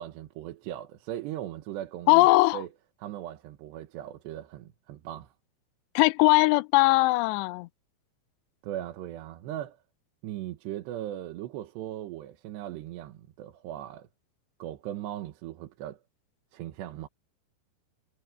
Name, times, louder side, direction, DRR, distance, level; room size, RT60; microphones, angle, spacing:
voice 1, 0.0-2.3 2.5-2.7 3.0-5.3 8.6-9.8 10.2-14.1 14.6-16.0 16.5-17.1, right 12 dB, 85° right, 3.4 m, -38 dB
voice 2, 2.1-2.6 6.0-7.7, left 22 dB, 90° left, 2.8 m, -20 dB
omnidirectional pair, 4.9 m